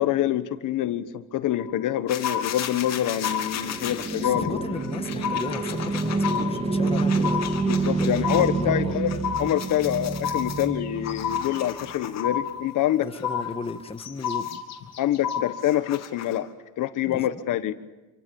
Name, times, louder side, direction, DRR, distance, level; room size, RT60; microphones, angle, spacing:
voice 1, 0.0-4.6 7.7-13.1 15.0-16.5 16.8-17.7, left 12 dB, 70° left, 12 dB, 1.4 m, -26 dB
sound 1, 1.6-1.9 2.2-2.9 3.2-3.9 4.2-4.9 5.2-5.9 6.2-6.9 7.2-7.9 8.2-8.9 9.2-9.9 10.2-10.9 11.2-11.9 12.2-12.9 13.2-13.9 14.2-14.9 15.2-15.9, left 8 dB, 90° left, 2.0 m, -31 dB
sound 2, 2.1-8.5 8.9-12.5 13.1-16.5, left 9 dB, 55° left, 3.1 m, -38 dB
sound 3, 2.6-11.9, right 3 dB, 20° right, 1.9 m, -28 dB
voice 2, 4.2-7.5 8.0-9.0 13.0-14.6 17.1-17.4, left 4 dB, 15° left, 8 dB, 1.4 m, -35 dB
27.5 x 24.5 x 7.1 m, 1.1 s
cardioid pair, 135°, 32 cm